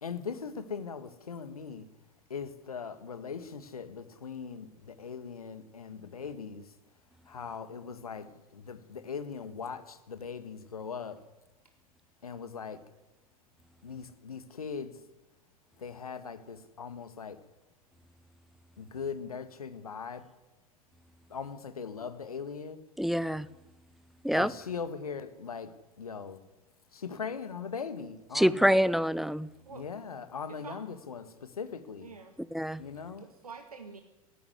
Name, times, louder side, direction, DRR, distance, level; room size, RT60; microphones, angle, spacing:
voice 1, 0.0-1.9 2.3-6.7 7.3-11.2 12.2-12.8 13.8-14.9 15.8-17.4 18.8-20.3 21.3-22.8 24.3-25.7 26.0-26.4 26.9-28.6 29.7-32.1 32.8-33.2, left 6 dB, 75° left, 11 dB, 1.7 m, -40 dB
voice 2, 23.0-23.5 24.2-24.5 28.3-29.5 32.5-32.8, equal, ahead, 19 dB, 0.6 m, -26 dB
voice 3, 30.5-30.8 32.0-32.4 33.2-34.0, right 5 dB, 80° right, 6 dB, 1.7 m, -47 dB
18.5 x 14.5 x 9.7 m, 1.0 s
figure-of-eight pair, 85°, 19 cm